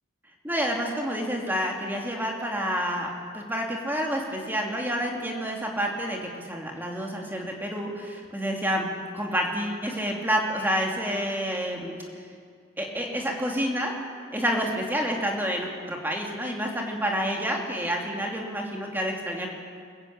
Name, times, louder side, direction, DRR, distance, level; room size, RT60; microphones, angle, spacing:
voice 1, 0.4-3.1 3.3-8.9 9.1-11.9 12.8-13.9 14.3-19.5, equal, 10° right, 0 dB, 2.6 m, -28 dB
23.5 x 15.0 x 8.7 m, 2.1 s
head